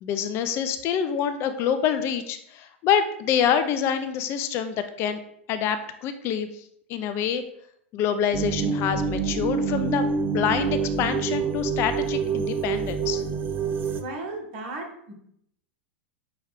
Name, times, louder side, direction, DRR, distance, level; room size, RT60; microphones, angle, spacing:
voice 1, 0.0-5.2 5.5-6.6 6.9-7.4 7.9-13.2, left 8 dB, 40° left, 10 dB, 0.4 m, -26 dB
sound 1, 8.3-14.0, right 5 dB, 30° right, 0.4 m, -27 dB
voice 2, 14.0-15.1, right 2 dB, 50° right, 2 dB, 1.1 m, -35 dB
5.7 x 2.3 x 3.4 m, 0.69 s
figure-of-eight pair, 95°, 7 cm